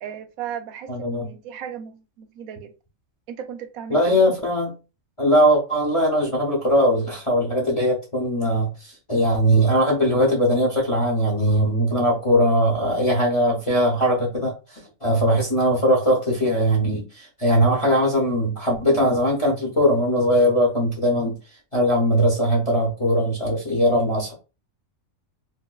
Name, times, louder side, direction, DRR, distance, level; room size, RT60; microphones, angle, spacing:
voice 1, 0.0-2.7 3.3-4.2, right 9 dB, 80° right, 1.0 m, -35 dB
voice 2, 0.9-1.3 3.9-4.7 5.2-14.5 15.0-21.3 21.7-24.3, equal, 25° left, 0.8 m, -20 dB
4.5 x 2.1 x 2.3 m
omnidirectional pair, 1.5 m